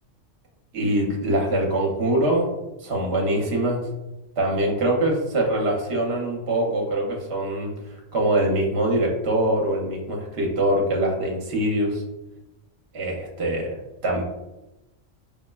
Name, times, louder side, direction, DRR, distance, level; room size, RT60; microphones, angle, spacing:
voice 1, 0.7-2.5 2.8-3.8 4.4-12.0 12.9-13.8 14.0-14.2, right 1 dB, 60° right, 0 dB, 1.0 m, -23 dB
5.2 x 2.1 x 2.2 m, 0.99 s
omnidirectional pair, 1.3 m